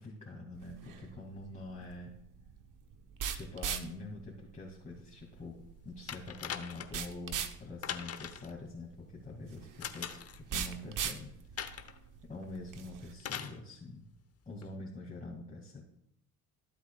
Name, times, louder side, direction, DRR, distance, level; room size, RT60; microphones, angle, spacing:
voice 1, 0.0-2.1 3.3-11.3 12.2-14.1 14.5-15.8, left 2 dB, 20° left, -3 dB, 2.5 m, -45 dB
sound 1, 0.5-13.1, right 8 dB, 55° right, 1.1 m, -42 dB
sound 2, 6.1-7.1 7.8-8.5 9.8-10.4 11.6-12.0 13.2-13.6 14.6-14.7, left 8 dB, 40° left, 1.0 m, -41 dB
14.5 x 8.1 x 2.4 m, 0.71 s
supercardioid pair, 80°, 38 cm